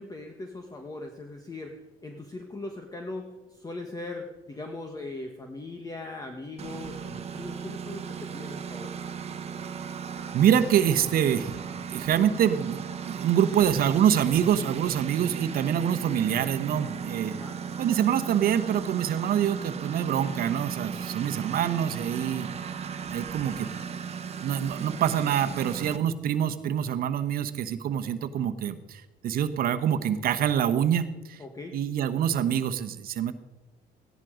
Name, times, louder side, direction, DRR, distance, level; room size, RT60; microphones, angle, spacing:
voice 1, 0.0-8.9 17.4-17.6 31.4-31.8, left 2 dB, 20° left, 4 dB, 1.3 m, -40 dB
Engine, 6.6-26.0, right 6 dB, 40° right, 1.1 m, -36 dB
voice 2, 10.3-11.6 11.9-17.3 17.8-22.5 23.1-23.7 24.4-31.4 31.7-33.3, right 9 dB, 60° right, 10 dB, 1.1 m, -25 dB
15.5 x 10.5 x 5.1 m, 1.1 s
cardioid pair, 110°, 17 cm